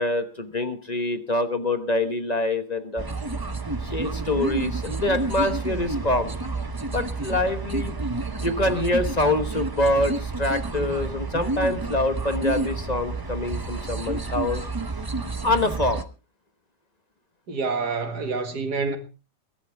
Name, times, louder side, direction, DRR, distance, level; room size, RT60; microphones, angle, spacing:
voice 1, 0.0-3.0 3.8-6.3 6.9-7.9 8.4-14.6 15.4-16.0, left 2 dB, 25° left, 1.1 m, -25 dB
sound 1, 3.0-16.0, right 3 dB, 25° right, 0.5 m, -30 dB
voice 2, 17.5-19.0, right 4 dB, 65° right, 2.5 m, -27 dB
22.0 x 12.0 x 3.5 m
omnidirectional pair, 1.9 m